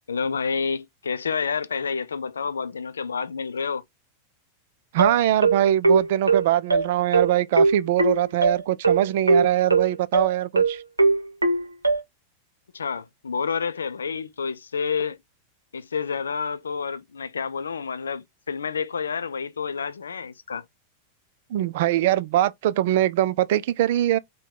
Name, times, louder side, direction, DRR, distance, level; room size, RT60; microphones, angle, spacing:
voice 1, 0.1-3.8 12.7-15.2 15.7-20.6, left 5 dB, 70° left, 0.4 m, -29 dB
voice 2, 4.9-10.8 21.5-24.2, right 13 dB, 55° right, 0.3 m, -22 dB
sound 1, 5.0-12.0, right 3 dB, 80° right, 0.7 m, -20 dB
4.5 x 2.2 x 3.6 m
figure-of-eight pair, 90°, 0 cm